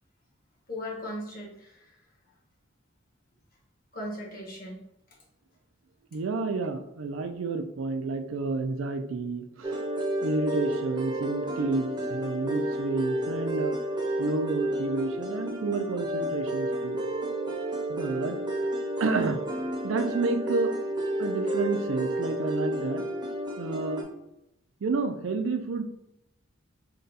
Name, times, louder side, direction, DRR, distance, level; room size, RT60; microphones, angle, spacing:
voice 1, 0.7-2.0 3.9-5.2, left 1 dB, 45° left, -4 dB, 1.4 m, -38 dB
voice 2, 6.1-9.8 10.2-13.8 14.2-17.0 17.9-18.4 19.0-19.4 19.8-20.7 21.2-23.0 23.6-24.1 24.8-25.8, right 3 dB, 70° right, 7 dB, 0.4 m, -30 dB
sound 1, 9.6-24.0, right 1 dB, 20° right, 0.7 m, -31 dB
3.9 x 2.3 x 4.0 m, 0.83 s
head